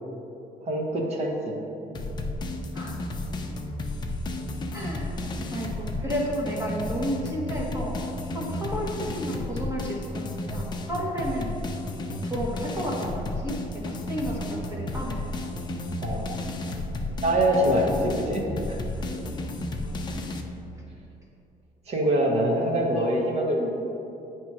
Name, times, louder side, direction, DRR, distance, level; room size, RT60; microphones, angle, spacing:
voice 1, 0.7-1.6 16.0-16.4 17.2-18.4 18.7-18.8 21.9-23.7, right 1 dB, 45° right, 0 dB, 1.1 m, -24 dB
sound 1, 1.9-20.4, left 2 dB, 30° left, 0.5 m, -33 dB
voice 2, 4.7-5.1 5.5-8.0 8.3-11.5 12.2-15.2 19.0-19.1, equal, 20° right, -3 dB, 1.2 m, -32 dB
8.6 x 3.1 x 6.0 m, 2.8 s
cardioid pair, 150°, 16 cm